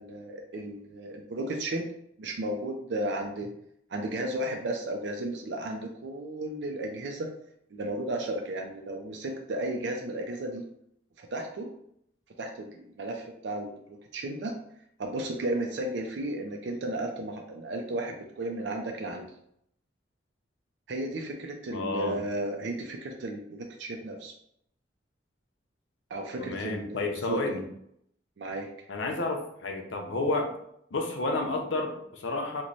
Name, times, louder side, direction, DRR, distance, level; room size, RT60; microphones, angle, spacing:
voice 1, 0.0-1.8 2.2-3.5 3.9-7.3 7.7-10.6 11.2-11.7 12.4-14.5 15.0-19.3 20.9-24.3 26.1-27.6 28.4-28.7, right 1 dB, 70° right, 2 dB, 0.4 m, -34 dB
voice 2, 21.7-22.2 26.4-27.6 28.9-30.5 30.9-32.6, left 2 dB, 85° left, 4 dB, 0.6 m, -31 dB
3.0 x 2.1 x 3.9 m, 0.73 s
head